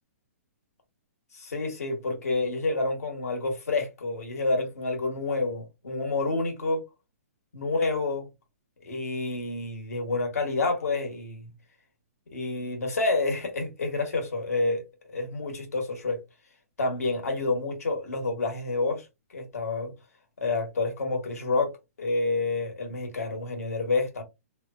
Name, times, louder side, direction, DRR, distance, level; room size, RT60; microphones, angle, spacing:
voice 1, 1.3-6.8 7.5-8.3 8.8-11.5 12.3-14.8 15.1-16.2 16.8-19.0 19.3-19.9 20.4-21.7 22.0-24.2, left 3 dB, 85° left, 1.2 m, -28 dB
2.8 x 2.1 x 2.4 m
hypercardioid pair, 145°, 8 cm